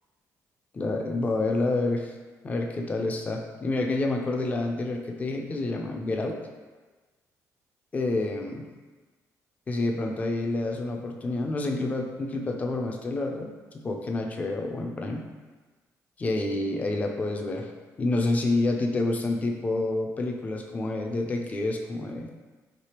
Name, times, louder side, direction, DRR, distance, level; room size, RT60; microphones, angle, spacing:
voice 1, 0.7-2.1 2.4-6.4 7.9-8.7 9.7-15.3 16.2-17.7 18.0-22.3, left 2 dB, 25° left, 2 dB, 0.3 m, -28 dB
3.3 x 2.7 x 2.9 m, 1.3 s
cardioid pair, 120°, 6 cm